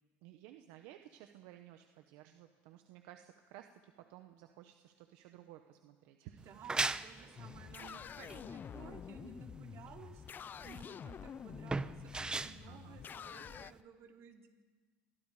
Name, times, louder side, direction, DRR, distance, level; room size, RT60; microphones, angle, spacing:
voice 1, 0.2-6.5 7.8-8.0 8.7-8.8 12.7-13.0, right 13 dB, 75° right, 6 dB, 1.3 m, -56 dB
voice 2, 6.2-10.2 10.6-14.5, right 7 dB, 55° right, 3 dB, 3.5 m, -55 dB
sound 1, 6.4-13.8, right 3 dB, 15° right, 0.9 m, -40 dB
sound 2, 7.4-13.7, left 8 dB, 35° left, 0.6 m, -48 dB
28.0 x 22.5 x 5.1 m, 1.4 s
supercardioid pair, 100°, 6 cm